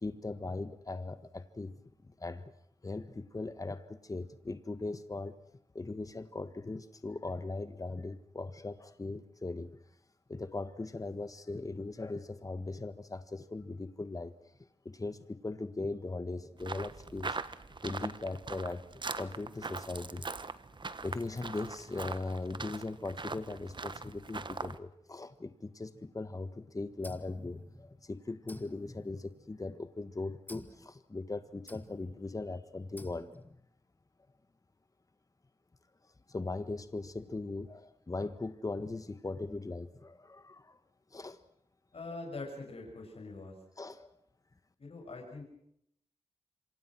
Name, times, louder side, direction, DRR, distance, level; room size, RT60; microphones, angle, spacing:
voice 1, 0.0-1.7 2.2-2.4 2.8-5.3 5.7-9.7 10.3-14.3 14.8-17.4 17.8-18.8 19.2-20.4 21.0-33.5 36.3-40.8 41.1-41.4 43.8-44.1, left 3 dB, 30° left, 11 dB, 1.7 m, -39 dB
sound 1, 16.6-24.8, right 4 dB, 45° right, 1.3 m, -41 dB
sound 2, 27.0-28.1 28.5-29.8 30.5-30.9 31.7-32.2 33.0-33.6, left 1 dB, 15° left, 2.1 m, -50 dB
voice 2, 41.9-43.5 44.8-45.4, left 3 dB, 65° left, 1 dB, 6.5 m, -43 dB
27.5 x 25.0 x 6.2 m, 0.72 s
wide cardioid pair, 75°, 11 cm